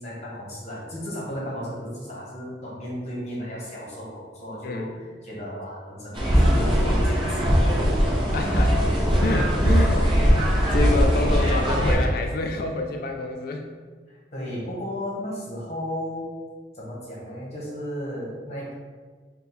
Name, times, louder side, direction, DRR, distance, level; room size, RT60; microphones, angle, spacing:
voice 1, 0.0-8.3 9.2-9.4 14.1-16.3 16.7-18.7, equal, 35° left, -6 dB, 1.0 m, -34 dB
sound 1, 6.1-11.9, equal, 25° right, 0.7 m, -20 dB
voice 2, 8.3-8.8 9.2-10.0 10.3-13.7, left 2 dB, 55° left, 3 dB, 0.3 m, -28 dB
3.5 x 2.2 x 4.3 m, 1.5 s
head